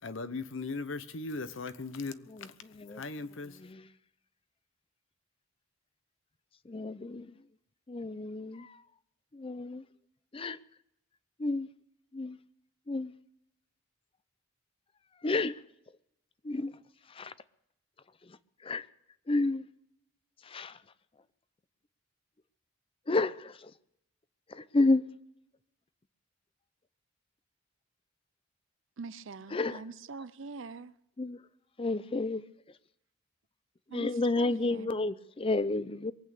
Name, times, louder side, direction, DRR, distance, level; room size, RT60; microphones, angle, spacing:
voice 1, 0.0-3.6, left 3 dB, 70° left, 0.9 m, -39 dB
voice 2, 2.3-3.0 3.6-3.9 6.6-7.5 7.9-8.8 9.3-9.9 10.3-10.6 11.4-11.7 12.1-12.4 12.9-13.1 15.2-15.6 16.4-16.8 17.0-17.3 18.2-18.9 19.3-19.7 20.4-20.8 23.1-23.7 24.5-25.0 29.5-29.8 31.2-31.4 31.8-32.4 32.7-32.8 33.9-36.1, left 2 dB, 25° left, 0.5 m, -31 dB
voice 3, 29.0-30.9 33.9-34.1 34.4-35.0, right 4 dB, 70° right, 0.6 m, -44 dB
22.5 x 8.6 x 6.8 m
head